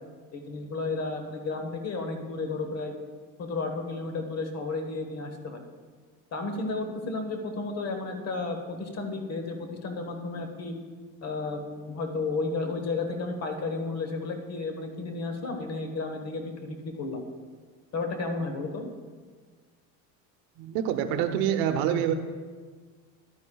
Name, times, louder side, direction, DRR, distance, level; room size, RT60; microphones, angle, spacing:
voice 1, 0.3-2.9 3.4-5.6 6.3-10.7 11.2-17.2 17.9-18.9, left 3 dB, 40° left, 5 dB, 1.2 m, -32 dB
voice 2, 20.6-22.1, right 9 dB, 75° right, 8 dB, 0.8 m, -26 dB
12.0 x 9.6 x 2.3 m, 1.5 s
cardioid pair, 120°, 37 cm